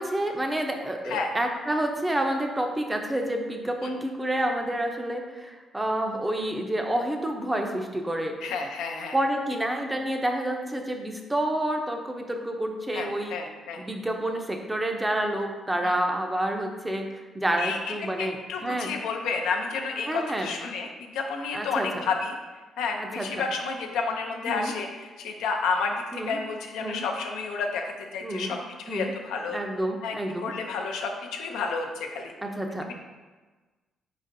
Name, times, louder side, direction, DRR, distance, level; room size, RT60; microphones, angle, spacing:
voice 1, 0.0-8.3 9.1-13.4 13.8-18.9 20.1-20.5 21.5-22.0 23.0-23.4 24.5-24.7 26.1-26.4 26.8-27.1 28.2-28.5 28.9-29.1 29.5-30.5 32.4-32.9, right 1 dB, 15° right, 3 dB, 0.5 m, -29 dB
voice 2, 8.4-9.2 12.9-13.8 15.8-15.9 17.6-17.8 18.2-22.3 22.8-28.6 28.9-29.6 30.0-32.3, left 4 dB, 90° left, 3 dB, 0.5 m, -31 dB
4.2 x 4.0 x 2.6 m, 1.3 s
cardioid pair, 90°, 0 cm